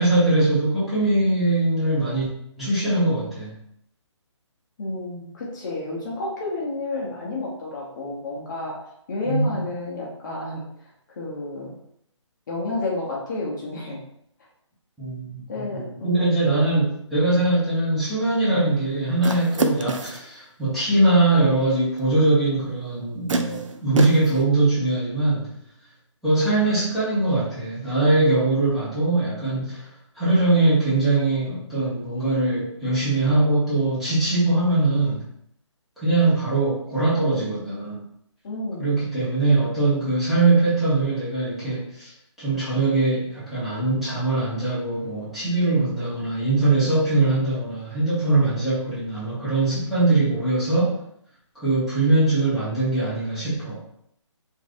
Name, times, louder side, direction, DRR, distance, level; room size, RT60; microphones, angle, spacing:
voice 1, 0.0-2.3 2.6-3.6 9.2-9.5 15.0-25.5 26.2-29.8 30.1-35.2 36.0-38.0 38.8-42.1 42.4-51.0 51.6-53.8, right 2 dB, ahead, -14 dB, 1.0 m, -22 dB
voice 2, 4.8-8.8 9.1-10.9 11.2-11.7 12.5-14.0 15.5-16.2 38.4-39.0, left 2 dB, 40° left, -5 dB, 0.7 m, -30 dB
sound 1, 19.2-20.3 22.1-22.2 23.3-24.4, right 3 dB, 80° right, 0.4 m, -26 dB
3.1 x 2.6 x 2.5 m, 0.72 s
figure-of-eight pair, 150°, 16 cm